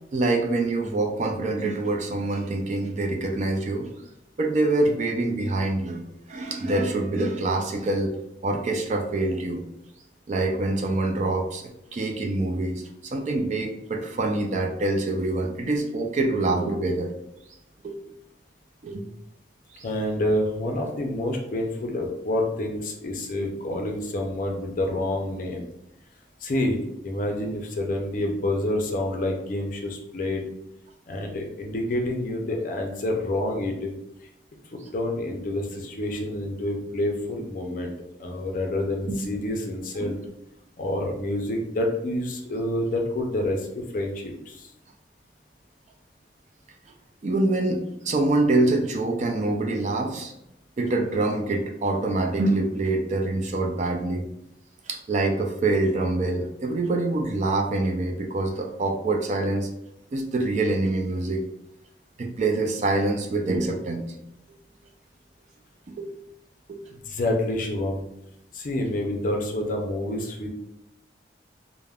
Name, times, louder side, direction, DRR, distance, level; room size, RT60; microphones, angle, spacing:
voice 1, 0.1-3.9 4.4-8.2 8.4-9.7 10.3-17.1 17.8-18.0 18.8-19.0 19.7-19.8 40.0-40.1 47.2-50.3 50.8-54.3 54.8-59.7 60.1-61.4 62.2-64.1 65.9-66.1 66.7-66.8, right 2 dB, 40° right, 2 dB, 0.3 m, -25 dB
voice 2, 19.8-25.7 26.4-30.4 31.1-33.9 34.7-37.9 38.2-40.2 40.8-44.7 66.9-68.0 68.5-70.5, left 1 dB, 45° left, 2 dB, 0.4 m, -28 dB
3.4 x 2.1 x 2.3 m, 0.82 s
head